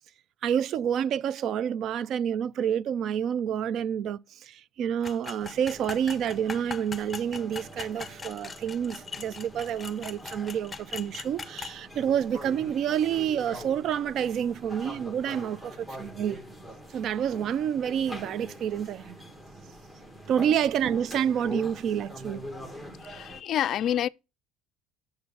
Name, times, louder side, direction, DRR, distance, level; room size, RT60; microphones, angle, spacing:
voice 1, 0.4-16.4 16.9-19.2 20.3-22.4, right 9 dB, 50° right, 0.4 m, -28 dB
sound 1, 5.0-11.8, left 4 dB, 20° left, 0.8 m, -40 dB
sound 2, 5.4-23.4, equal, 10° right, 1.5 m, -44 dB
voice 2, 22.9-24.1, left 11 dB, 50° left, 0.3 m, -28 dB
6.6 x 4.5 x 6.7 m
cardioid pair, 120°, 0 cm